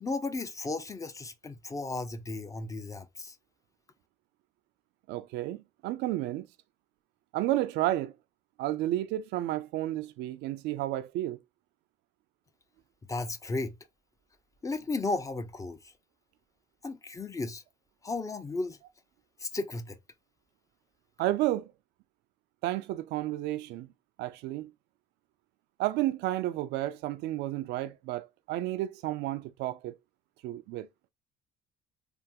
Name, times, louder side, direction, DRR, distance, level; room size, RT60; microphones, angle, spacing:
voice 1, 0.0-3.4 13.1-13.8 14.6-15.8 16.8-17.6 18.0-18.8 19.4-20.0, left 3 dB, 20° left, 0.4 m, -34 dB
voice 2, 5.1-6.5 7.3-8.2 8.6-11.4 21.2-21.7 22.6-23.9 24.2-24.7 25.8-30.0 30.4-30.9, right 15 dB, 85° right, 0.4 m, -31 dB
3.4 x 2.0 x 2.7 m
cardioid pair, 110°, 17 cm